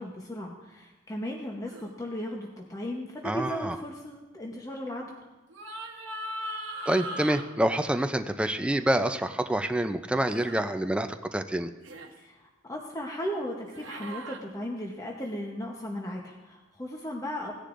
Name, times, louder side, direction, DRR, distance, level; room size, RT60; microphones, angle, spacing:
voice 1, 0.0-5.1 12.2-17.5, equal, 15° left, -1 dB, 0.9 m, -36 dB
sound 1, 1.7-1.9 5.5-7.4 10.3-10.6 11.8-12.1 13.7-14.4, right 1 dB, 65° right, 1.1 m, -38 dB
voice 2, 3.2-3.8 6.9-11.7, right 1 dB, 5° right, 8 dB, 0.4 m, -27 dB
17.0 x 10.0 x 2.5 m, 1.1 s
head